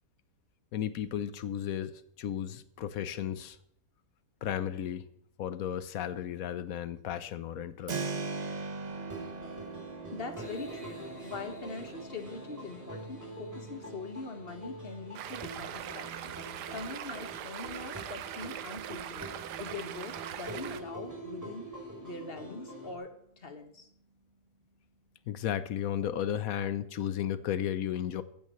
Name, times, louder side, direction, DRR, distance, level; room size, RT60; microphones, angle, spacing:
voice 1, 0.7-3.6 4.4-5.1 5.4-8.0 25.3-28.2, left 10 dB, 60° left, 14 dB, 1.0 m, -34 dB
Keyboard (musical), 7.9-18.6, right 4 dB, 45° right, 0.5 m, -43 dB
sound 1, 8.8-22.9, right 2 dB, 10° right, 3.3 m, -45 dB
voice 2, 10.1-16.4 16.7-19.3 19.6-21.7 22.0-23.9, left 3 dB, 35° left, 6 dB, 1.5 m, -43 dB
Stream, 15.1-20.8, right 10 dB, 70° right, 1.3 m, -41 dB
15.5 x 14.5 x 3.1 m, 0.71 s
omnidirectional pair, 2.0 m